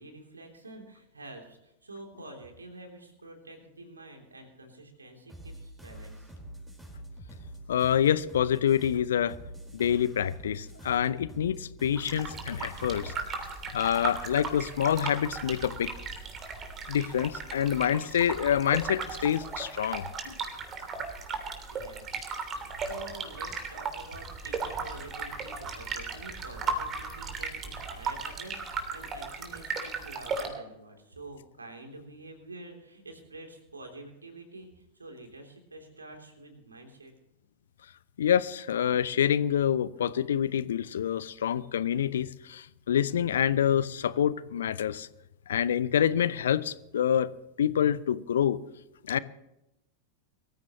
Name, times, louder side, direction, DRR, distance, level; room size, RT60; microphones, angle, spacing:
voice 1, 0.0-6.3 21.7-37.1, right 2 dB, 75° right, 3 dB, 3.3 m, -47 dB
sound 1, 5.3-13.2, right 1 dB, 10° right, 4.8 m, -45 dB
voice 2, 7.7-9.4 9.7-13.1 13.7-15.9 16.9-20.3 38.2-45.1 45.5-47.3 47.6-48.6 49.1-49.2, left 9 dB, 65° left, 18 dB, 0.7 m, -27 dB
sound 2, 12.0-30.5, right 4 dB, 25° right, 3.2 m, -36 dB
23.5 x 14.5 x 3.1 m, 0.89 s
figure-of-eight pair, 90°, 0 cm